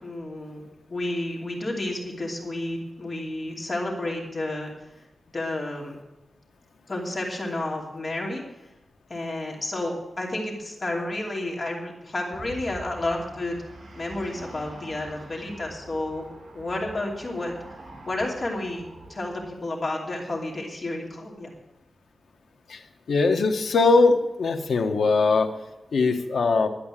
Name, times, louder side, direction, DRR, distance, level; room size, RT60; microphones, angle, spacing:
voice 1, 0.0-0.6 0.9-4.7 5.3-6.0 6.9-8.4 9.1-13.6 14.0-17.5 18.1-18.8 19.1-21.5, left 2 dB, 35° left, -1 dB, 2.8 m, -31 dB
sound 1, 12.3-19.5, right 2 dB, 50° right, 3.0 m, -45 dB
voice 2, 23.1-25.5 25.9-26.7, left 3 dB, 80° left, 5 dB, 1.3 m, -21 dB
12.0 x 8.5 x 9.1 m, 0.98 s
wide cardioid pair, 140°, 0 cm